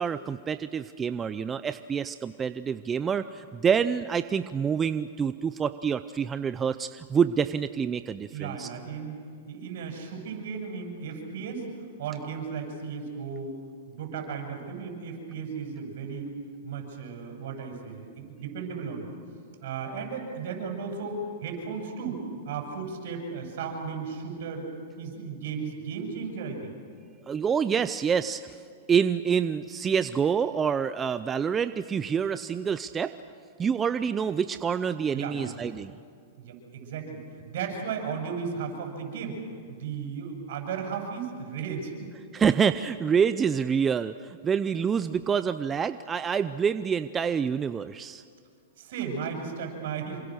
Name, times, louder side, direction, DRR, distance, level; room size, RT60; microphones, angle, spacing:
voice 1, 0.0-8.7 27.3-28.5 28.9-33.1 33.6-35.9 42.3-48.2, right 7 dB, 20° right, 12 dB, 0.6 m, -27 dB
voice 2, 8.3-9.2 9.5-11.7 12.0-13.5 13.9-16.4 16.6-19.1 19.6-24.7 25.0-26.7 35.1-35.5 36.4-39.4 39.7-42.1 48.8-50.2, right 5 dB, 65° right, 3 dB, 7.5 m, -35 dB
27.5 x 25.0 x 6.5 m, 2.3 s
hypercardioid pair, 135°, 0 cm